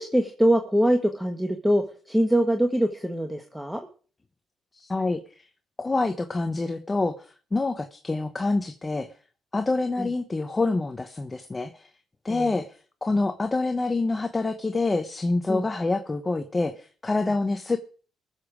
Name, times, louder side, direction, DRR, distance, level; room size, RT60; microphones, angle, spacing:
voice 1, 0.0-3.8 10.0-10.1 12.3-12.6 15.5-15.7 17.2-17.3, equal, 5° right, 5 dB, 1.3 m, -23 dB
voice 2, 4.7-5.5 5.8-9.1 9.5-11.9 12.2-17.8, left 3 dB, 20° left, 8 dB, 1.0 m, -27 dB
20.5 x 7.2 x 5.1 m, 0.41 s
cardioid pair, 90°, 0 cm